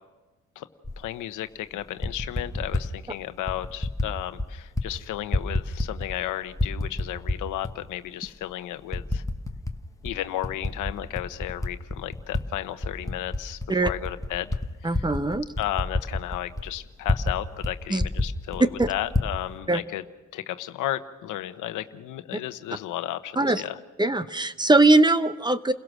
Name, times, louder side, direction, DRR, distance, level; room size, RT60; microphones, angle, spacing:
Typing, 0.8-1.0 1.8-2.9 3.5-4.1 4.4-4.9 5.1-6.2 6.5-7.7 8.3-8.4 8.9-9.8 10.1-12.4 12.8-17.4 17.6-17.7 18.0-19.3, left 2 dB, 10° left, 1.2 m, -28 dB
voice 1, 1.0-9.2 10.0-14.6 14.9-15.1 15.6-20.0 20.3-23.8, left 13 dB, 85° left, 11 dB, 1.0 m, -33 dB
voice 2, 14.8-15.5 17.9-18.0 18.8-18.9 19.7-19.8 23.4-23.6 24.0-25.7, right 2 dB, 15° right, 12 dB, 0.9 m, -21 dB
29.5 x 17.0 x 6.3 m, 1.2 s
cardioid pair, 90°, 30 cm